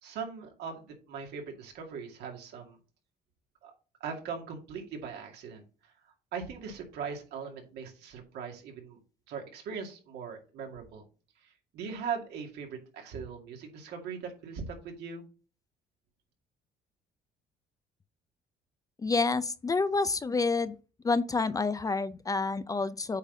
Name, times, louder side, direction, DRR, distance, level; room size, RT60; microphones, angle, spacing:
voice 1, 0.0-2.8 3.6-3.7 4.0-9.0 9.3-11.0 11.4-15.2, right 6 dB, 80° right, 2.3 m, -40 dB
voice 2, 19.0-20.7 21.0-23.2, left 4 dB, 20° left, 0.5 m, -28 dB
8.2 x 4.0 x 3.9 m
cardioid pair, 110°, 17 cm